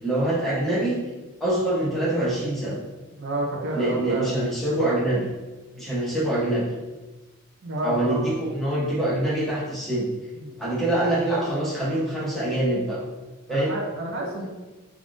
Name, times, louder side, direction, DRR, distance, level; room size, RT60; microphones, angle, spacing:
voice 1, 0.0-1.0 1.4-2.8 3.7-5.3 5.8-6.6 7.8-10.1 10.6-13.0 13.5-13.8, right 1 dB, ahead, -8 dB, 0.8 m, -24 dB
voice 2, 3.2-4.4 7.6-8.3 10.4-10.6 13.5-14.5, right 2 dB, 50° right, -2 dB, 0.5 m, -29 dB
3.4 x 2.3 x 2.5 m, 1.1 s
head